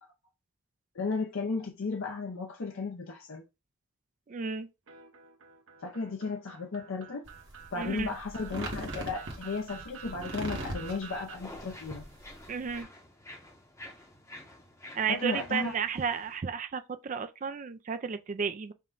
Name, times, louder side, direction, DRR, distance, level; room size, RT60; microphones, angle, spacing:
voice 1, 0.9-3.4 5.8-7.3 7.7-12.1 15.1-15.7, left 4 dB, 75° left, 0.6 m, -34 dB
voice 2, 4.3-4.7 7.8-8.1 12.5-12.9 15.0-18.7, right 6 dB, 35° right, 0.3 m, -33 dB
sound 1, 4.9-11.4, right 8 dB, 75° right, 0.9 m, -49 dB
sound 2, 7.2-12.8, right 1 dB, 60° right, 1.2 m, -41 dB
sound 3, 11.3-16.4, left 1 dB, 15° left, 0.7 m, -49 dB
5.4 x 2.2 x 3.7 m
head